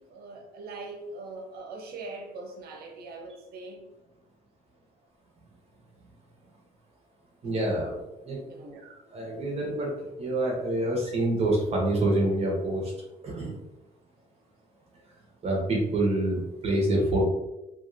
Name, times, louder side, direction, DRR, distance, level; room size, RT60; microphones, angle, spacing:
voice 1, 0.0-3.8 7.5-7.8 8.5-9.0, right 3 dB, 65° right, 1 dB, 0.8 m, -42 dB
voice 2, 7.4-8.4 9.1-12.9 13.2-13.5 15.4-17.3, right 1 dB, 40° right, -2 dB, 1.1 m, -27 dB
2.8 x 2.7 x 2.7 m, 0.96 s
cardioid pair, 110°, 17 cm